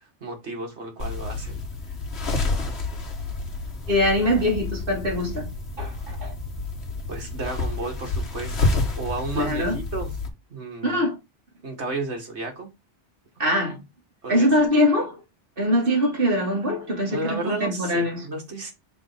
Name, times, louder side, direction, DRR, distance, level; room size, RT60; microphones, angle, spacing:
voice 1, 0.0-1.6 7.1-10.1 10.5-11.0 11.6-12.7 14.2-14.5 17.1-18.7, right 2 dB, 65° right, 2.2 m, -33 dB
sound 1, 1.0-10.3, left 3 dB, 60° left, 1.6 m, -29 dB
voice 2, 3.9-5.5 5.8-6.3 9.3-9.8 10.8-11.1 13.4-13.8 14.3-15.2 15.6-18.3, left 1 dB, 50° right, 2.5 m, -23 dB
5.4 x 4.2 x 5.0 m
omnidirectional pair, 1.2 m